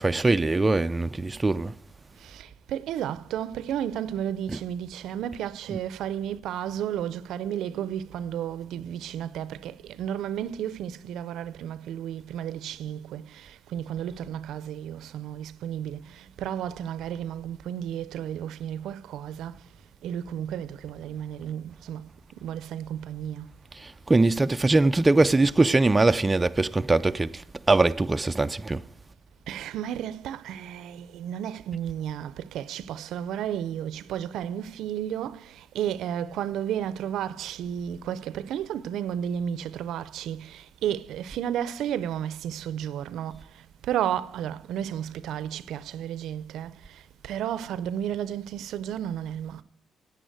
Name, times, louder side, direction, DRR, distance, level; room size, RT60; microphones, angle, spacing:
voice 1, 0.0-1.7 4.5-4.6 5.7-5.8 24.1-27.3 27.7-28.8, right 2 dB, 20° right, 0.4 m, -22 dB
voice 2, 2.3-16.0 16.4-19.5 20.0-22.0 22.4-23.5 29.5-35.4 35.7-43.4 43.9-46.7 47.2-49.6, right 10 dB, 80° right, 0.6 m, -32 dB
10.0 x 8.7 x 9.1 m
cardioid pair, 70°, 0 cm